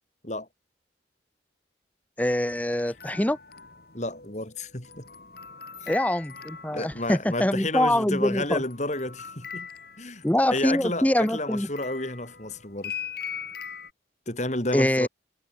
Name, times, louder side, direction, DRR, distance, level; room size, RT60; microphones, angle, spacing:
sound 1, 2.2-7.2 8.4-13.9, left 7 dB, 55° left, 7.2 m, -41 dB
voice 1, 2.2-3.4 5.9-8.6 10.2-11.7 14.7-15.1, left 1 dB, 10° left, 0.7 m, -24 dB
voice 2, 3.9-5.0 6.7-9.7 10.0-12.9 14.3-15.1, left 2 dB, 40° left, 3.7 m, -31 dB
head